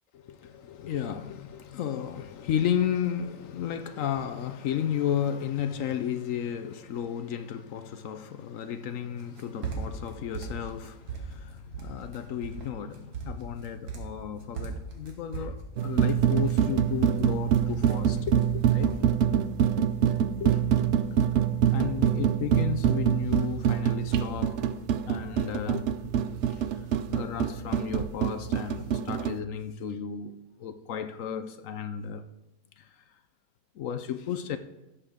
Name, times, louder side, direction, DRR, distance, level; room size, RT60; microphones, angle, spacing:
voice 1, 0.2-19.0 20.4-20.6 21.7-24.6 25.1-25.9 26.5-26.6 27.1-32.2 32.8-32.9 33.8-34.6, left 9 dB, 65° left, 0.9 m, -33 dB
sound 1, 9.2-10.1 10.3-11.4 11.7-12.2 12.4-12.7 12.9-14.2 14.6-17.2 17.5-18.5 18.8-19.0, right 5 dB, 90° right, 2.0 m, -37 dB
sound 2, 15.8-29.4, right 9 dB, 65° right, 0.7 m, -25 dB
16.5 x 7.3 x 3.6 m
omnidirectional pair, 1.6 m